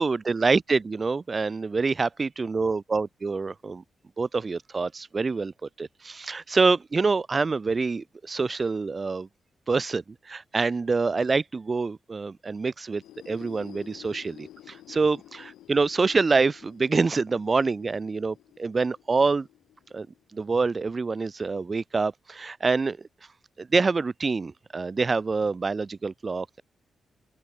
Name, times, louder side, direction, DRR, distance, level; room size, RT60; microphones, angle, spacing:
voice 1, 0.0-3.8 4.2-9.3 9.7-19.5 19.9-20.1 20.3-23.0 23.6-26.6, right 4 dB, 40° right, 0.4 m, -26 dB
sound 1, 12.9-20.5, left 13 dB, 85° left, 2.8 m, -51 dB
open air
supercardioid pair, 50°, 0 cm